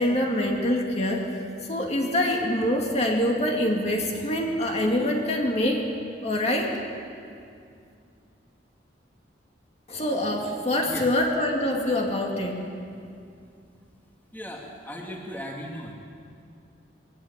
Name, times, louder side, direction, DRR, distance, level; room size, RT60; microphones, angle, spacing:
voice 1, 0.0-5.8 6.2-6.7 9.9-12.5, left 1 dB, 35° left, 0 dB, 2.4 m, -25 dB
voice 2, 14.3-15.9, equal, 10° left, -1 dB, 2.3 m, -37 dB
22.0 x 16.0 x 9.9 m, 2.4 s
head